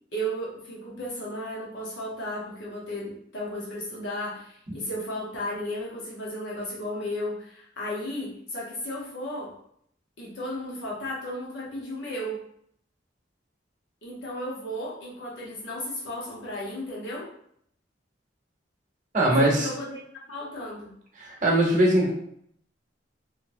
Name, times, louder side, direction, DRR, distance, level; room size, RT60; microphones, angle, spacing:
voice 1, 0.1-9.5 10.2-12.4 14.0-17.3 19.4-20.0 20.3-21.0, equal, 70° left, -5 dB, 1.0 m, -34 dB
voice 2, 19.1-19.7 21.2-22.1, right 1 dB, 40° right, -2 dB, 1.0 m, -21 dB
3.4 x 3.0 x 2.6 m, 0.67 s
head